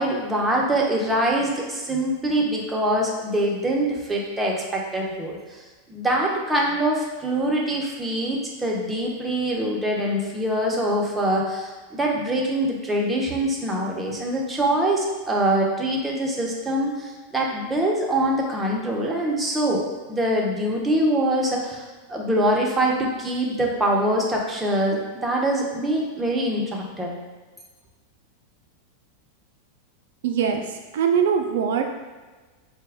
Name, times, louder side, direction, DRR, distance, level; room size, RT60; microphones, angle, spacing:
voice 1, 0.0-5.6 5.9-27.2, right 1 dB, 10° right, -2 dB, 0.7 m, -24 dB
voice 2, 30.2-30.6 30.9-31.8, right 7 dB, 75° right, 4 dB, 0.4 m, -21 dB
4.1 x 2.2 x 3.4 m, 1.3 s
supercardioid pair, 130°, 0 cm